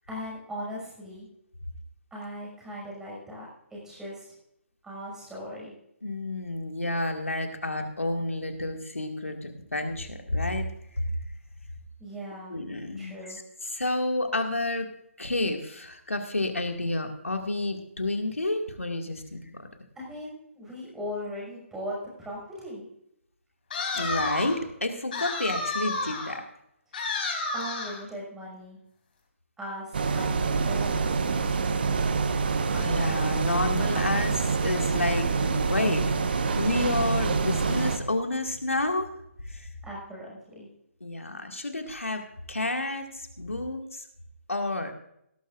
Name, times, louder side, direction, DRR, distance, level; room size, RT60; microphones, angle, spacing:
voice 1, 0.1-1.3 2.1-4.3 4.8-5.7 12.0-12.6 13.0-13.4 20.0-22.9 27.5-28.8 29.6-32.2 39.8-40.7, equal, 5° right, -5 dB, 5.8 m, -39 dB
voice 2, 6.0-10.7 10.9-11.0 12.5-14.9 15.2-19.7 23.9-26.4 32.7-39.1 39.5-39.7 41.0-44.0 44.5-44.9, left 2 dB, 80° left, 4 dB, 2.2 m, -30 dB
sound 1, 23.7-24.6 25.1-26.4 26.9-28.0, left 3 dB, 40° left, 3.4 m, -31 dB
sound 2, 29.9-38.0, right 4 dB, 45° right, 1.2 m, -26 dB
17.5 x 13.0 x 2.6 m, 0.77 s
figure-of-eight pair, 145°, 7 cm